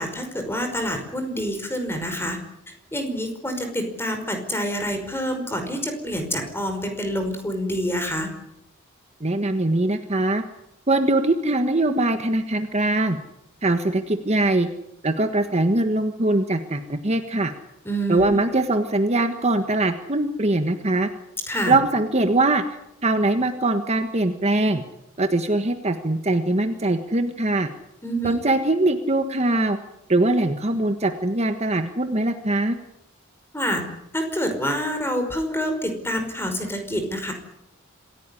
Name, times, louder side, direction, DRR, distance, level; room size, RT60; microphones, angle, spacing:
voice 1, 0.0-2.4 2.9-8.3 17.8-18.3 21.5-21.8 28.0-28.4 33.5-33.8 34.1-37.3, equal, 10° left, 6 dB, 5.3 m, -27 dB
voice 2, 9.2-10.4 10.9-13.2 13.6-14.7 15.0-17.5 18.1-21.1 21.7-24.8 25.2-27.7 28.2-29.8 30.1-32.8, right 2 dB, 30° right, 7 dB, 1.5 m, -22 dB
26.5 x 16.5 x 10.0 m, 0.82 s
head